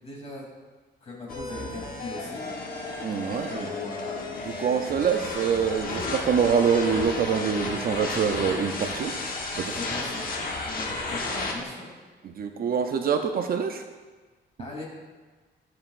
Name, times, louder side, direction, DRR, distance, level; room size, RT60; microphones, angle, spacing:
voice 1, 0.0-0.5 1.0-2.4 3.3-4.2 9.8-10.3 10.7-11.9 14.6-14.8, left 2 dB, 30° left, -4 dB, 2.9 m, -39 dB
sound 1, 1.3-11.5, left 3 dB, 45° left, 1.2 m, -33 dB
voice 2, 3.0-3.7 4.5-9.1 9.6-9.8 12.4-13.8, right 6 dB, 50° right, 6 dB, 0.5 m, -25 dB
12.5 x 7.5 x 2.5 m, 1.3 s
cardioid pair, 155°, 20 cm